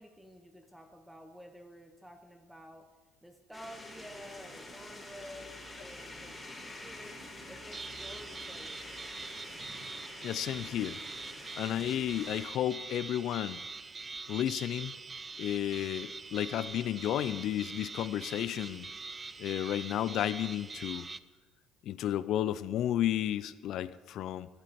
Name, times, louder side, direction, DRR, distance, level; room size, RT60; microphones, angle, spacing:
voice 1, 0.0-2.9 3.2-7.2 7.4-8.9, equal, 5° right, 5 dB, 1.0 m, -51 dB
sound 1, 3.5-12.4, left 1 dB, 15° left, 3.6 m, -47 dB
sound 2, 7.7-21.2, right 4 dB, 30° right, 0.4 m, -44 dB
voice 2, 10.2-11.0 11.6-13.6 14.3-14.9 15.4-18.9 19.4-21.1 21.8-24.5, left 11 dB, 65° left, 16 dB, 0.4 m, -32 dB
12.5 x 8.5 x 4.3 m, 1.3 s
supercardioid pair, 80°, 0 cm